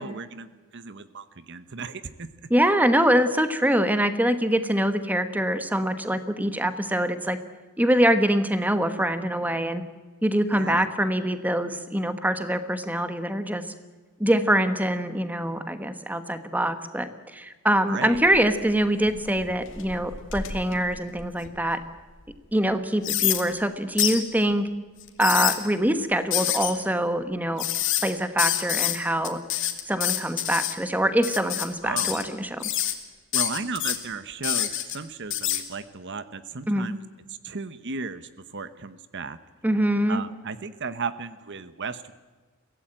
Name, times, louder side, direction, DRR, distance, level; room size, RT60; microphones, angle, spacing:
voice 1, 0.0-2.3 10.5-10.9 17.9-18.2 31.8-32.1 33.3-37.0 37.3-39.4 40.1-42.1, right 4 dB, 55° right, 13 dB, 1.0 m, -35 dB
voice 2, 2.5-7.4 7.8-9.8 10.2-13.6 14.2-21.8 22.5-24.7 25.2-27.6 28.0-29.4 29.9-32.7 36.7-36.9 39.6-40.2, right 1 dB, 5° right, 10 dB, 1.3 m, -24 dB
sound 1, 18.1-18.6 19.1-21.7 22.2-22.3 23.0-23.4 24.0-24.2 25.0-25.6 26.3-26.7 27.6-28.1 28.4-29.0 29.2-30.7 31.2-31.7 32.0-32.3 32.6-32.9 33.3-34.0 34.4-35.0 35.3-35.6, left 12 dB, 55° left, 2.4 m, -26 dB
23.5 x 16.5 x 9.0 m, 1.3 s
head